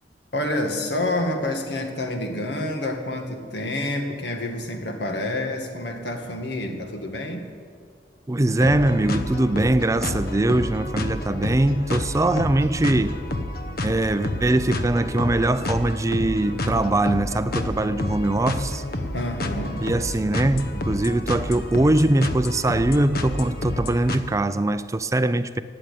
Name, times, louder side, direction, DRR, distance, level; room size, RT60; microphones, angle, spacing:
voice 1, 0.3-7.4 19.1-19.8, left 1 dB, 75° left, 4 dB, 2.0 m, -28 dB
voice 2, 8.3-13.2 13.8-18.8 19.8-25.6, right 1 dB, 20° right, 12 dB, 0.4 m, -22 dB
sound 1, 8.6-24.2, left 1 dB, 60° left, 1.1 m, -29 dB
17.5 x 8.9 x 8.5 m, 2.1 s
head